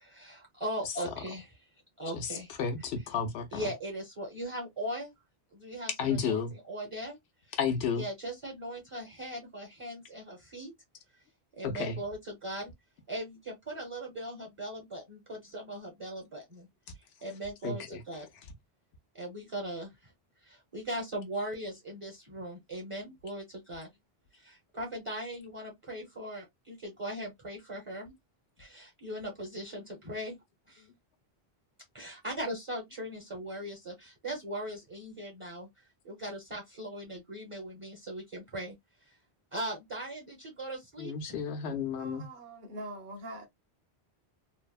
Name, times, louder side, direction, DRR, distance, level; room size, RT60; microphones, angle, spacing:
voice 1, 0.0-1.5 2.0-2.5 3.5-5.1 5.5-6.4 6.7-7.2 7.9-10.7 11.6-12.7 13.1-16.7 17.2-18.3 19.1-20.1 20.4-23.9 24.3-28.1 28.6-30.4 30.7-30.9 31.9-38.8 39.1-39.2 39.5-41.4, right 1 dB, 35° right, 0.9 m, -39 dB
voice 2, 2.1-3.7 6.0-6.5 7.5-8.1 11.6-12.0 17.6-18.0 41.0-42.2, left 6 dB, 90° left, 0.9 m, -32 dB
voice 3, 42.0-43.5, right 1 dB, 55° right, 1.1 m, -43 dB
3.3 x 2.0 x 2.2 m
omnidirectional pair, 1.0 m